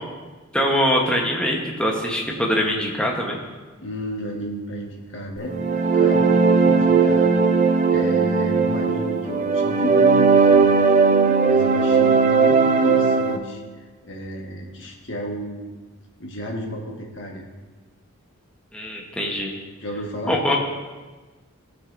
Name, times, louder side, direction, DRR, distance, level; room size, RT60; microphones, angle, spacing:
voice 1, 0.5-3.4 18.7-19.6 20.3-20.6, equal, 5° left, -1 dB, 1.0 m, -23 dB
voice 2, 3.8-7.3 7.9-10.8 11.5-15.8 16.2-17.4 19.8-20.4, equal, 55° left, 0 dB, 1.4 m, -32 dB
sound 1, 5.5-13.4, right 4 dB, 35° right, 0.5 m, -17 dB
16.0 x 5.9 x 2.6 m, 1.3 s
head